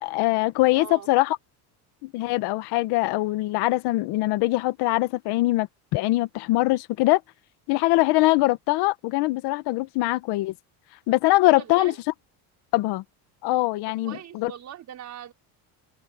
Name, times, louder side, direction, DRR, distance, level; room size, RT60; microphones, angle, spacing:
voice 1, 0.0-1.4 2.0-5.7 5.9-7.2 7.7-10.5 11.1-11.9 12.7-13.0 13.4-14.5, left 19 dB, 70° left, 1.5 m, -22 dB
voice 2, 0.7-1.1 11.4-12.0 13.9-15.3, right 10 dB, 45° right, 3.7 m, -41 dB
open air
cardioid pair, 140°, 41 cm